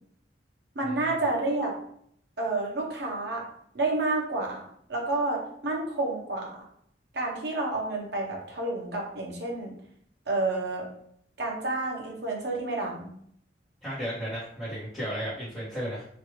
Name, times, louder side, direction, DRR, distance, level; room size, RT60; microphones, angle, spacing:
voice 1, 0.7-1.7 2.4-3.5 3.7-6.7 7.1-9.7 10.3-10.9 11.4-13.1, right 2 dB, 70° right, -1 dB, 0.8 m, -30 dB
voice 2, 13.8-16.1, equal, ahead, -15 dB, 1.0 m, -34 dB
3.0 x 2.4 x 3.0 m, 0.66 s
head